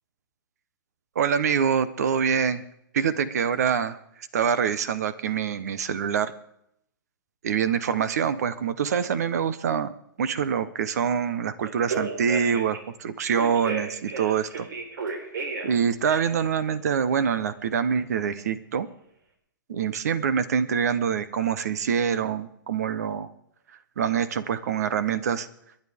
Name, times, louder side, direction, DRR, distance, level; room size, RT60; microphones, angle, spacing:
voice 1, 1.1-2.6 2.9-4.0 4.3-6.3 7.4-9.9 10.2-14.7 15.6-18.9 19.7-23.3 24.0-25.5, right 7 dB, 50° right, 14 dB, 0.9 m, -25 dB
Telephone, 11.6-12.8 13.4-15.7 16.0-16.5, right 4 dB, 75° right, 4.1 m, -32 dB
29.0 x 10.5 x 3.5 m, 0.74 s
hypercardioid pair, 180°, 11 cm